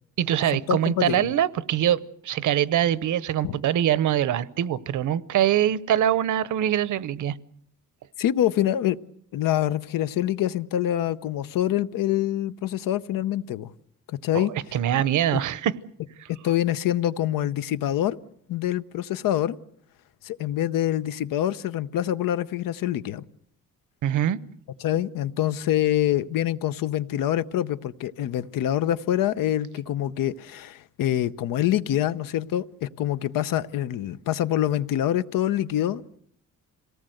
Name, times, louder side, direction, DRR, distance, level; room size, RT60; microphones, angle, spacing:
voice 1, 0.2-7.4 14.3-14.5 14.7-15.7 16.2-16.3 24.0-24.4, right 11 dB, 65° right, 0.8 m, -23 dB
voice 2, 0.7-1.3 3.4-3.6 8.2-9.0 9.3-13.7 14.1-14.5 16.4-18.2 18.5-19.6 20.2-23.2 24.8-36.2, left 12 dB, 80° left, 0.9 m, -25 dB
26.5 x 18.0 x 7.8 m
cardioid pair, 150°, 33 cm